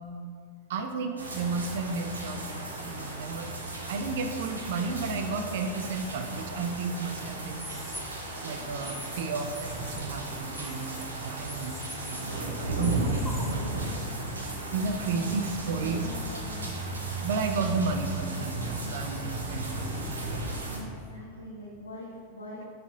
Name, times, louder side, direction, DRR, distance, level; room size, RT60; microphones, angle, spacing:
voice 1, 0.7-2.5 2.8-7.7 8.4-14.2 14.7-16.2 17.2-20.1, right 4 dB, 55° right, 5 dB, 0.3 m, -33 dB
sound 1, 1.2-20.8, right 1 dB, 75° right, 0.7 m, -35 dB
sound 2, 7.6-8.0 8.8-9.2 9.5-10.0 10.5-11.0 11.5-12.4 12.8-13.5, equal, ahead, 0.5 m, -43 dB
voice 2, 15.0-16.8 20.7-22.7, equal, 80° left, -6 dB, 0.5 m, -43 dB
sound 3, 16.2-19.0, right 5 dB, 50° left, 1.4 m, -42 dB
6.9 x 2.5 x 2.7 m, 2.2 s
figure-of-eight pair, 90°, 0 cm